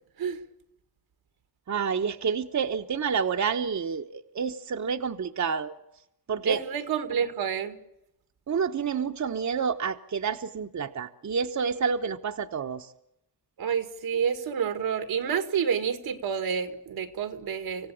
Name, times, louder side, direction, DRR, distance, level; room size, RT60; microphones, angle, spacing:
voice 1, 1.7-5.8 6.3-6.6 8.5-12.9, right 6 dB, 50° right, 1.1 m, -29 dB
voice 2, 6.4-7.8 13.6-17.9, right 7 dB, 90° right, 2.0 m, -29 dB
26.0 x 16.0 x 8.6 m
cardioid pair, 75°, 36 cm